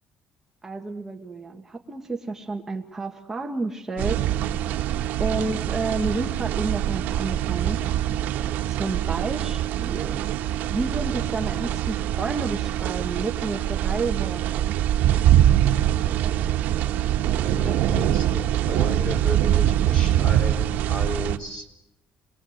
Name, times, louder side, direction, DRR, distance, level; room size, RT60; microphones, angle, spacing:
voice 1, 0.6-4.2 5.2-7.8 8.7-10.2 10.7-14.7, right 3 dB, 15° right, 2 dB, 1.5 m, -30 dB
sound 1, 4.0-21.4, right 12 dB, 85° right, 1.2 m, -23 dB
voice 2, 17.5-21.7, left 2 dB, 30° left, 6 dB, 4.7 m, -34 dB
29.5 x 22.5 x 7.9 m, 0.88 s
cardioid pair, 175°, 3 cm